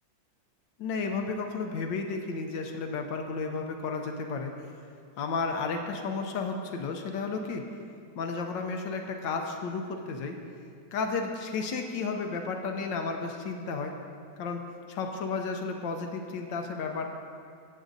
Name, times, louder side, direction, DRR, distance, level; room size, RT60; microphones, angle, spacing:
voice 1, 0.8-4.5 5.2-7.6 8.1-10.4 10.9-13.9 14.4-14.6 14.9-17.1, left 4 dB, 75° left, 4 dB, 1.3 m, -32 dB
16.0 x 7.4 x 2.6 m, 2.3 s
omnidirectional pair, 2.2 m